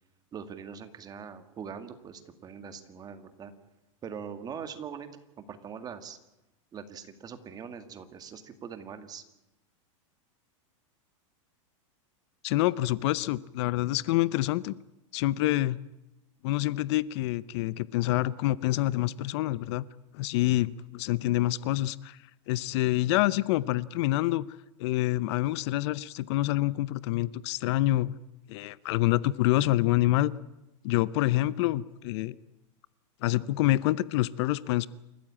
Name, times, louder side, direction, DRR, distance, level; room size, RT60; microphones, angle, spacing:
voice 1, 0.3-3.5 4.0-5.1 5.4-6.2 6.7-9.2, right 7 dB, 25° right, 9 dB, 2.0 m, -42 dB
voice 2, 12.4-14.7 15.1-15.8 16.4-19.9 20.1-22.2 22.5-24.5 24.8-28.1 28.5-30.3 30.8-32.4 33.2-34.9, left 16 dB, 55° left, 19 dB, 0.7 m, -27 dB
28.0 x 14.5 x 8.8 m, 0.94 s
supercardioid pair, 140°, 17 cm